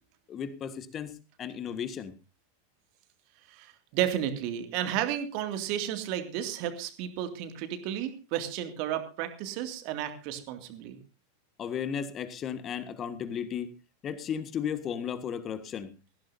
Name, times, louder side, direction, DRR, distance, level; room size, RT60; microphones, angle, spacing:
voice 1, 0.3-2.2 11.6-13.7 14.0-15.9, left 8 dB, 30° left, 13 dB, 1.6 m, -35 dB
voice 2, 3.5-11.0, right 11 dB, 45° right, 8 dB, 2.3 m, -32 dB
20.0 x 15.5 x 2.7 m, 0.31 s
figure-of-eight pair, 90°, 0 cm